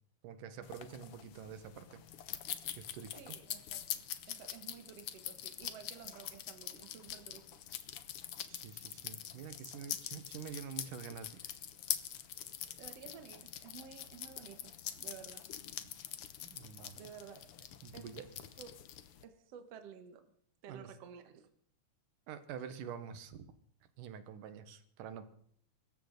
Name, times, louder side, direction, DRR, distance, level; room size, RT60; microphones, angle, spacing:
voice 1, 0.2-2.0 2.7-3.4 8.5-11.3 16.4-17.0 17.8-18.3 20.7-20.9 22.3-23.5 24.0-25.3, right 7 dB, 80° right, 11 dB, 2.8 m, -47 dB
sound 1, 0.6-19.2, left 10 dB, 70° left, 1.3 m, -45 dB
voice 2, 3.2-7.6 12.8-15.5 17.0-17.5 17.9-18.1 18.6-18.8 19.2-20.3 20.6-21.5, right 8 dB, 60° right, 8 dB, 2.0 m, -53 dB
24.0 x 14.0 x 4.0 m, 0.63 s
omnidirectional pair, 3.8 m